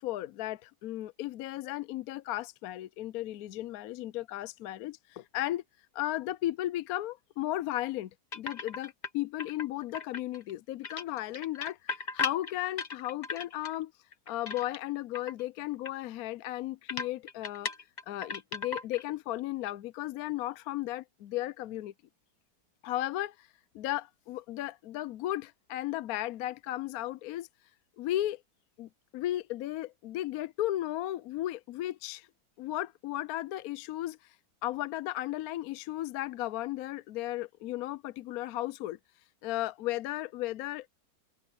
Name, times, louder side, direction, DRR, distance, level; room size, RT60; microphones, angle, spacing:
voice 1, 0.0-5.6 5.9-13.9 14.3-17.7 18.1-21.9 22.8-23.5 23.7-27.5 28.0-28.4 28.8-32.3 32.6-34.3 34.6-39.0 39.4-40.9, left 14 dB, 70° left, 0.9 m, -35 dB
sound 1, 8.3-9.1 9.4-10.5 10.8-13.8 14.1-14.9 15.1-15.4 15.9-16.0 16.2-16.3 16.9-19.1 19.4-19.7, left 4 dB, 30° left, 1.0 m, -37 dB
omnidirectional pair, 1.9 m